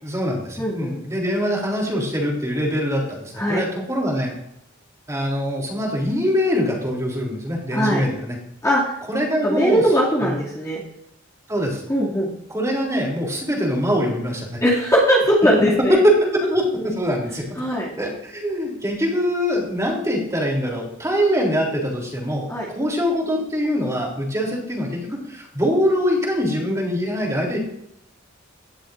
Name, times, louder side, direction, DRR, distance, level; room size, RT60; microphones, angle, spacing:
voice 1, 0.0-4.3 5.1-8.3 9.1-9.8 10.2-10.3 11.5-11.8 12.5-14.6 15.9-17.5 18.0-22.5 22.7-27.6, equal, 15° right, -1 dB, 3.4 m, -23 dB
voice 2, 0.6-1.0 3.4-3.6 7.7-8.0 8.6-9.0 9.4-10.8 11.9-12.3 14.6-16.0 17.6-17.9 22.5-22.7, equal, 15° left, -6 dB, 2.6 m, -20 dB
17.5 x 11.5 x 2.6 m, 0.76 s
head